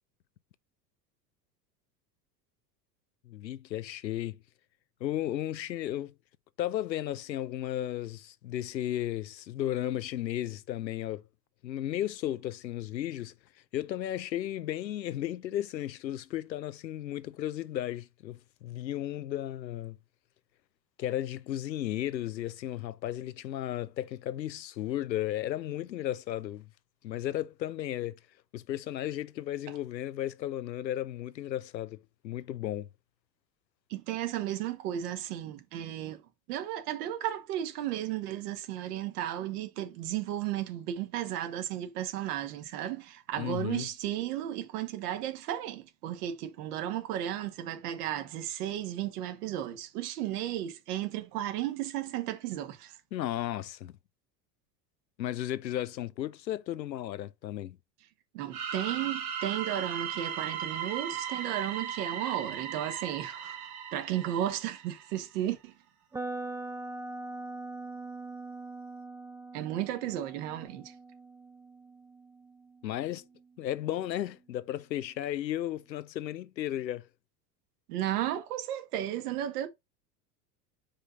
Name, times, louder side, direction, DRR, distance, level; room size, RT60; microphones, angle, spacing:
voice 1, 3.3-4.4 5.0-6.1 6.6-11.2 11.6-13.3 13.7-20.0 21.0-26.7 27.0-28.2 28.5-32.9 43.4-43.9 53.1-53.9 55.2-57.8 72.8-73.2 73.6-77.1, left 12 dB, 90° left, 0.6 m, -34 dB
voice 2, 33.9-36.2 36.5-53.0 58.3-65.7 69.5-70.9 77.9-79.7, right 12 dB, 65° right, 1.6 m, -34 dB
sound 1, 58.5-65.2, right 8 dB, 45° right, 2.4 m, -37 dB
sound 2, 66.1-74.1, right 2 dB, 5° right, 0.4 m, -42 dB
5.1 x 3.8 x 5.4 m
hypercardioid pair, 85°, 50 cm